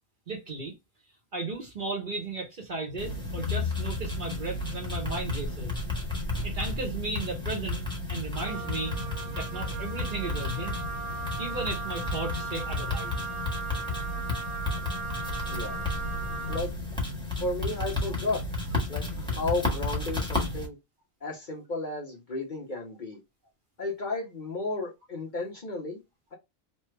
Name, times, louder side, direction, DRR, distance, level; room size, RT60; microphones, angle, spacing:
voice 1, 0.3-0.7 1.3-5.8 6.4-7.8 8.1-9.0 9.4-10.7 11.4-13.3, right 3 dB, 45° right, 0.8 m, -35 dB
sound 1, 3.0-20.7, left 2 dB, 5° left, 1.2 m, -32 dB
Wind instrument woodwind instrument, 8.4-16.7, right 4 dB, 75° right, 0.3 m, -38 dB
voice 2, 15.5-15.9 16.5-16.7 17.4-18.4 18.9-20.8 21.2-23.2 23.8-26.0, left 2 dB, 45° left, 0.8 m, -33 dB
3.3 x 2.2 x 3.1 m
omnidirectional pair, 1.4 m